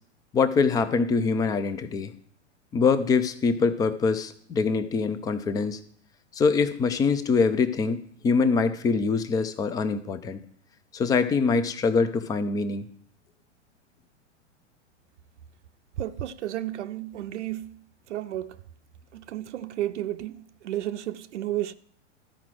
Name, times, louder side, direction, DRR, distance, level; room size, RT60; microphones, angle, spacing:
voice 1, 0.3-2.1 2.7-5.8 6.3-10.4 10.9-12.8, left 4 dB, 10° left, 0.4 m, -24 dB
voice 2, 16.0-17.8 18.1-18.6 19.1-21.7, right 13 dB, 70° right, 0.6 m, -32 dB
13.0 x 5.0 x 6.1 m
hypercardioid pair, 130°, 36 cm